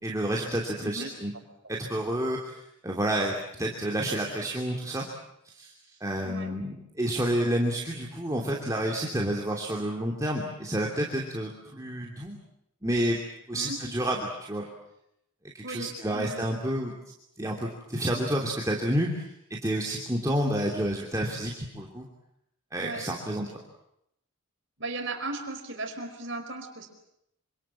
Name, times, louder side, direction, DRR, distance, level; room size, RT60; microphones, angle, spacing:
voice 1, 0.0-1.3 1.7-5.1 5.4-5.7 6.0-12.4 12.8-13.2 13.5-14.7 15.5-16.9 17.4-19.3 19.6-22.1 22.7-23.5, right 1 dB, 15° right, -1 dB, 3.0 m, -29 dB
voice 2, 6.2-6.6 13.5-13.8 15.6-17.0 22.8-23.1 24.8-26.9, right 2 dB, 55° right, 5 dB, 4.8 m, -37 dB
27.0 x 26.5 x 7.6 m, 0.80 s
head